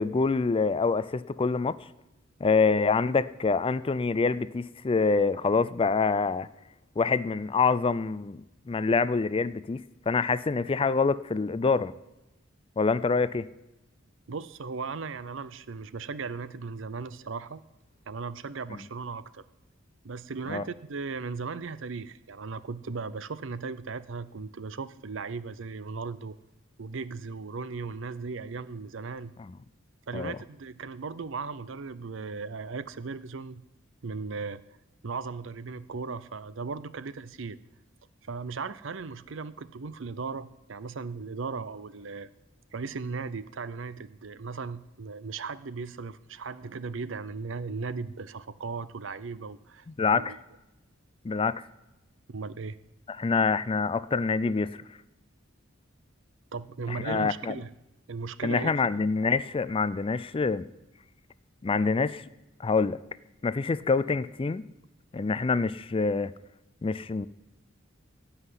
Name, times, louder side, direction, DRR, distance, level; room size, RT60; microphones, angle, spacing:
voice 1, 0.0-1.8 2.4-6.5 7.0-8.4 8.7-9.8 10.1-11.9 12.8-13.5 20.5-20.6 29.5-29.6 30.1-30.4 50.0-50.4 51.2-51.6 53.1-54.8 56.9-57.5 58.4-60.7 61.6-62.2 62.6-63.0 63.4-64.6 65.1-66.3 66.8-67.3, left 4 dB, 25° left, 0.4 m, -26 dB
voice 2, 14.3-17.6 18.1-19.4 20.0-26.4 26.8-29.3 30.1-33.6 34.0-34.8 35.0-37.6 38.2-42.3 42.7-49.9 50.1-50.4 52.3-52.8 56.5-57.7 58.1-58.7, right 4 dB, 70° right, 0.6 m, -37 dB
16.5 x 5.7 x 9.9 m
head